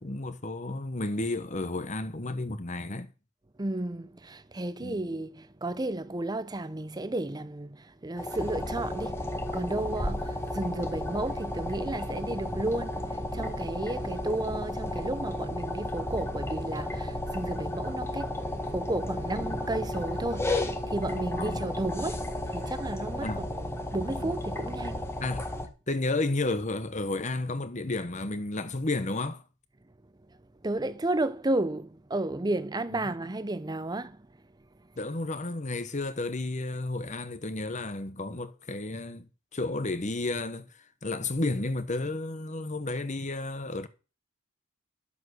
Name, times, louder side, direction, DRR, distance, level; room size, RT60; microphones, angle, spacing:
voice 1, 0.0-3.1 4.8-5.0 21.4-21.7 23.2-23.5 24.2-24.3 25.2-25.4 25.9-29.4 32.9-33.1 35.0-43.9, left 2 dB, 35° left, 1.1 m, -32 dB
voice 2, 3.6-18.4 18.7-25.1 30.6-34.3, right 2 dB, 20° right, 0.6 m, -33 dB
sound 1, 8.2-25.7, left 1 dB, 10° left, 1.4 m, -33 dB
12.0 x 7.6 x 6.4 m
head